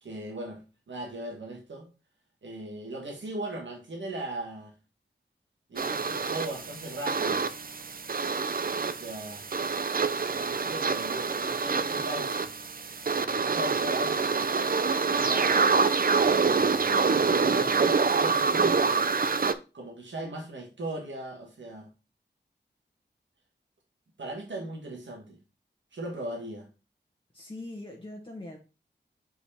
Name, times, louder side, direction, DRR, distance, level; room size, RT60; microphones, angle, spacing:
voice 1, 0.0-0.6 0.9-1.9 2.4-4.7 5.7-7.4 8.2-8.4 8.8-9.5 10.3-12.5 13.1-14.5 15.0-15.6 16.4-17.0 17.3-19.1 19.7-21.9 24.2-25.4 25.9-26.7, right 1 dB, 85° right, 1.7 m, -38 dB
sound 1, 5.8-19.5, right 4 dB, 50° right, 0.6 m, -26 dB
voice 2, 27.3-28.6, left 2 dB, 30° left, 1.4 m, -42 dB
5.4 x 5.0 x 4.2 m
wide cardioid pair, 65°, 19 cm